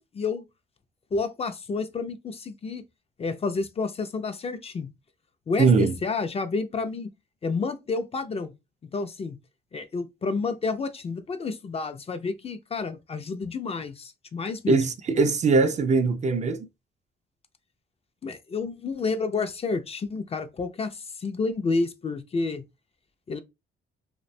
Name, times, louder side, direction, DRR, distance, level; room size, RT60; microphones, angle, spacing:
voice 1, 0.1-0.4 1.1-2.8 3.2-4.9 5.5-7.1 7.4-8.5 8.9-9.4 9.7-14.8 18.2-22.6 23.3-23.4, left 4 dB, 30° left, 0.4 m, -30 dB
voice 2, 5.6-6.0 14.7-16.7, right 4 dB, 35° right, 0.4 m, -21 dB
2.5 x 2.1 x 2.5 m
cardioid pair, 90°, 20 cm